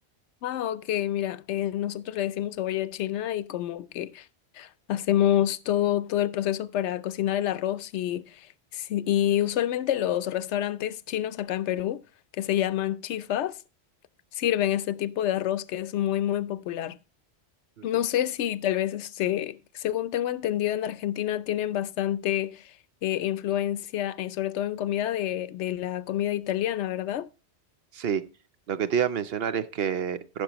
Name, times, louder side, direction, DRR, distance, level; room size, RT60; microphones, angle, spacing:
voice 1, 0.4-4.3 4.6-8.5 8.7-12.0 12.4-13.6 14.3-17.0 17.8-22.7 23.0-27.3, left 12 dB, 90° left, 0.9 m, -28 dB
voice 2, 28.7-30.4, right 8 dB, 65° right, 0.9 m, -28 dB
15.0 x 5.9 x 2.9 m
omnidirectional pair, 1.1 m